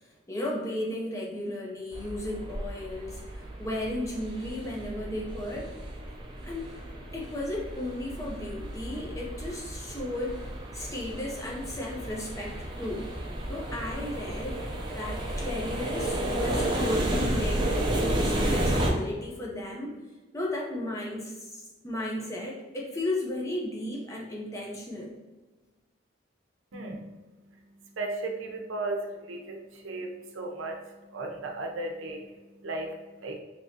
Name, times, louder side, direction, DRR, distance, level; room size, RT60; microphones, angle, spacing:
voice 1, 0.3-5.7 6.4-6.7 7.1-10.4 10.7-13.1 13.5-14.6 14.9-20.0 20.3-25.1, left 1 dB, 15° left, -3 dB, 0.6 m, -34 dB
sound 1, 1.9-18.9, right 1 dB, 25° right, 0.4 m, -32 dB
voice 2, 26.7-33.4, right 2 dB, 90° right, 2 dB, 0.6 m, -36 dB
3.6 x 2.9 x 2.7 m, 1.2 s
head